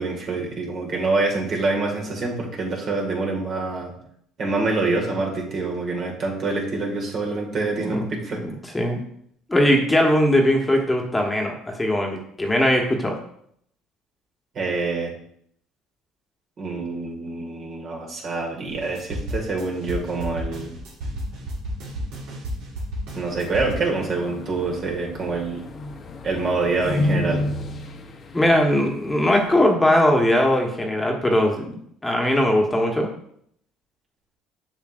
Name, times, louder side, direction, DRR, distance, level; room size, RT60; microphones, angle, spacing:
voice 1, 0.0-3.9 4.4-8.4 14.6-15.1 16.6-20.7 23.1-25.6 26.2-27.5, right 3 dB, 50° right, -1 dB, 2.0 m, -26 dB
voice 2, 8.4-9.1 9.5-13.1 28.3-33.1, left 1 dB, 15° left, 1 dB, 1.3 m, -20 dB
sound 1, 18.7-23.7, equal, 75° right, 1.8 m, -32 dB
sound 2, 23.3-29.5, left 2 dB, 40° left, 0.9 m, -31 dB
7.1 x 5.5 x 2.6 m, 0.68 s
hypercardioid pair, 70°, 0 cm